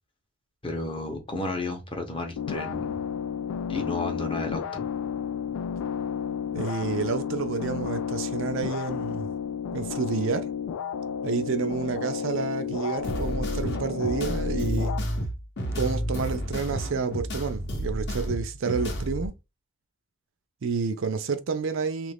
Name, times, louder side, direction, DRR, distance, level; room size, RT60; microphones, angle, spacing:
voice 1, 0.6-3.0 3.7-4.8, left 2 dB, 25° left, 0.7 m, -32 dB
sound 1, 2.4-15.0, left 7 dB, 80° left, 0.3 m, -32 dB
voice 2, 6.5-9.3 9.7-10.5 11.2-15.0 15.7-19.3 20.6-22.1, right 5 dB, 60° right, 0.4 m, -29 dB
sound 2, 13.0-19.3, equal, 50° left, 0.8 m, -31 dB
3.1 x 2.5 x 3.4 m
head